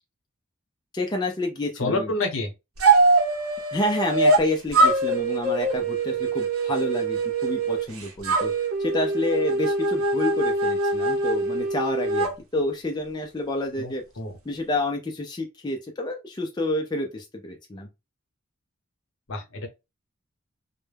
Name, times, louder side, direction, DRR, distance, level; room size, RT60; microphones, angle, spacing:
voice 1, 0.9-2.1 3.7-8.5 8.8-14.0 14.5-17.9, left 1 dB, 20° left, 0.3 m, -29 dB
voice 2, 1.8-2.5 13.8-13.9 14.2-14.3 19.3-19.7, left 2 dB, 75° left, 0.7 m, -27 dB
sound 1, 2.8-4.5 4.7-7.8 8.2-12.3, right 2 dB, 90° right, 0.6 m, -23 dB
2.2 x 2.0 x 3.2 m
head